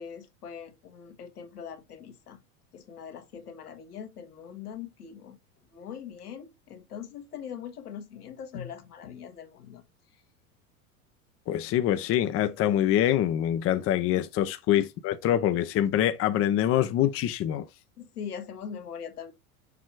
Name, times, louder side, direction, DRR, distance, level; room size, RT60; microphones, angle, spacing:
voice 1, 0.0-2.4 2.7-5.4 5.7-9.8 18.0-19.3, left 7 dB, 80° left, 1.5 m, -41 dB
voice 2, 11.5-17.7, left 11 dB, 30° left, 0.7 m, -25 dB
6.8 x 2.9 x 4.7 m
figure-of-eight pair, 85°, 46 cm